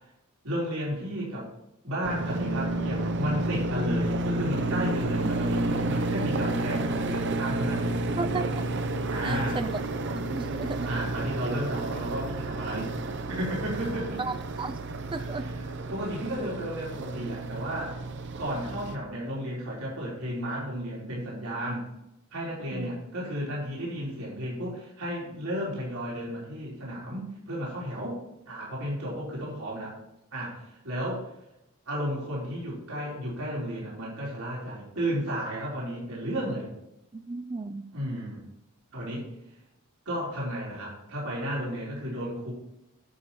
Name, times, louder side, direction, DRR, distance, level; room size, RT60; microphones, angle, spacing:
voice 1, 0.4-1.5 1.8-8.0 9.1-9.6 10.8-12.9 13.3-14.2 15.2-18.0 18.4-21.8 22.3-29.9 30.3-31.3 31.9-36.7 37.9-38.4 38.9-39.3 40.1-42.5, equal, 80° right, -6 dB, 4.1 m, -33 dB
sound 1, 2.0-19.0, right 2 dB, 55° right, 0.8 m, -31 dB
voice 2, 8.2-8.5 9.2-9.8 10.1-10.9 14.2-14.8 15.1-15.5 22.7-22.9 37.1-37.8, right 3 dB, 25° right, 11 dB, 0.4 m, -34 dB
11.0 x 7.2 x 4.3 m, 0.85 s
head